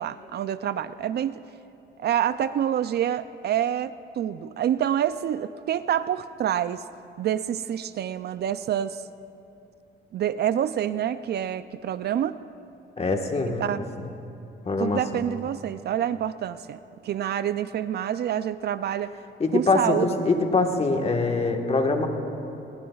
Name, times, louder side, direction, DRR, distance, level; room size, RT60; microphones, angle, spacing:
voice 1, 0.0-1.4 2.0-6.8 7.2-9.0 10.1-12.4 13.6-13.8 14.8-19.2 19.5-20.1, right 10 dB, 55° right, 14 dB, 0.4 m, -27 dB
voice 2, 13.0-13.7 14.6-15.0 19.4-22.1, left 3 dB, 30° left, 3 dB, 1.4 m, -23 dB
20.5 x 19.5 x 2.4 m, 2.8 s
cardioid pair, 90°, 20 cm